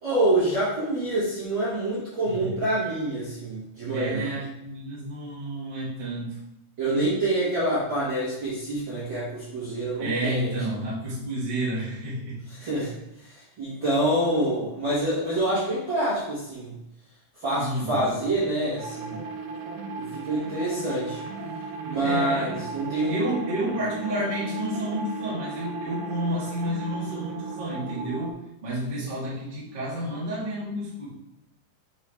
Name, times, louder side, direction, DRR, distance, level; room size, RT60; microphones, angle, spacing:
voice 1, 0.0-4.3 6.8-10.5 12.6-16.7 17.4-19.2 19.9-21.2 21.9-23.2, right 1 dB, 45° right, -10 dB, 1.7 m, -26 dB
voice 2, 3.9-6.4 10.0-12.4 17.6-18.1 22.0-22.6 23.1-28.4 28.6-31.1, right 1 dB, 20° right, -8 dB, 1.4 m, -30 dB
sound 1, 18.8-28.3, right 4 dB, 75° right, 2.2 m, -36 dB
6.5 x 4.7 x 3.4 m, 0.85 s
omnidirectional pair, 4.3 m